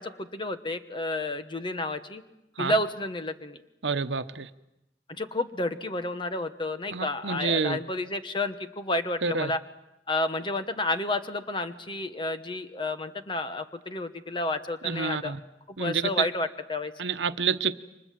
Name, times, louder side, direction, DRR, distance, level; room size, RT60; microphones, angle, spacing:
voice 1, 0.0-2.2 2.6-3.6 5.1-9.6 10.1-15.3 15.7-16.9, left 2 dB, 25° left, 1.2 m, -31 dB
voice 2, 3.8-4.5 6.9-7.8 9.2-9.5 14.8-15.4 15.8-16.3 17.0-17.7, right 5 dB, 85° right, 1.0 m, -28 dB
29.0 x 24.5 x 7.6 m
head